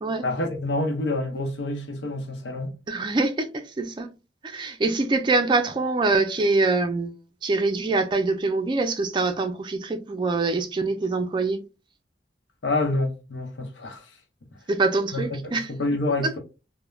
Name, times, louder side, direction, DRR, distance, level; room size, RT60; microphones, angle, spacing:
voice 1, 0.2-2.7 12.6-14.1 15.1-16.4, left 2 dB, 85° left, 0.7 m, -27 dB
voice 2, 2.9-4.1 4.4-7.1 7.4-11.6 14.7-15.7, right 3 dB, 25° right, 0.4 m, -24 dB
3.1 x 2.1 x 2.3 m
head